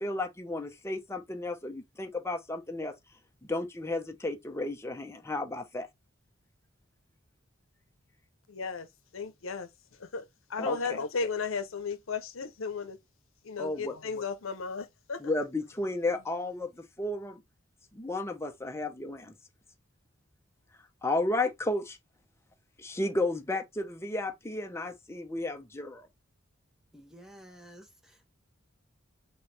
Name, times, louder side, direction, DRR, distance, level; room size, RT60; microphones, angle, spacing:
voice 1, 0.0-2.9 3.5-5.9 10.6-10.8 13.6-14.0 15.2-17.4 17.9-19.3 21.0-22.0 22.8-26.1, left 2 dB, 15° left, 0.6 m, -33 dB
voice 2, 8.5-8.9 9.1-9.7 10.0-13.0 13.4-15.3, left 5 dB, 80° left, 0.7 m, -35 dB
voice 3, 26.9-28.3, right 1 dB, 5° right, 1.0 m, -52 dB
4.6 x 3.0 x 3.2 m
head